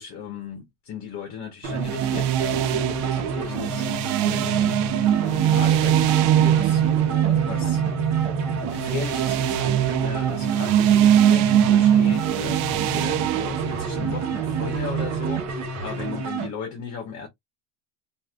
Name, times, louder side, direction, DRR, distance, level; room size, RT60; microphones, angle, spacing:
voice 1, 0.0-3.9 4.2-4.8 5.2-7.8 8.7-17.3, left 7 dB, 40° left, 1.2 m, -36 dB
sound 1, 1.6-16.5, right 4 dB, 40° right, 1.1 m, -30 dB
sound 2, 1.7-15.4, right 10 dB, 60° right, 0.6 m, -22 dB
3.2 x 2.7 x 2.4 m
supercardioid pair, 140°, 43 cm